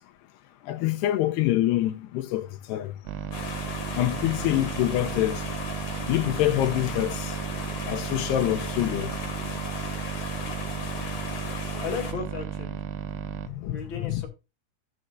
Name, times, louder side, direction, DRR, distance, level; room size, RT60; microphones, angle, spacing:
voice 1, 0.7-2.9 3.9-5.4 6.1-7.3 7.9-9.1 13.6-13.8 14.0-14.2, left 14 dB, 85° left, 3.0 m, -25 dB
sound 1, 3.1-13.5, right 9 dB, 85° right, 3.0 m, -34 dB
sound 2, 3.3-12.1, left 5 dB, 50° left, 3.7 m, -37 dB
voice 2, 11.8-12.8 13.7-14.3, left 6 dB, 30° left, 3.6 m, -34 dB
15.5 x 7.7 x 2.5 m
omnidirectional pair, 4.7 m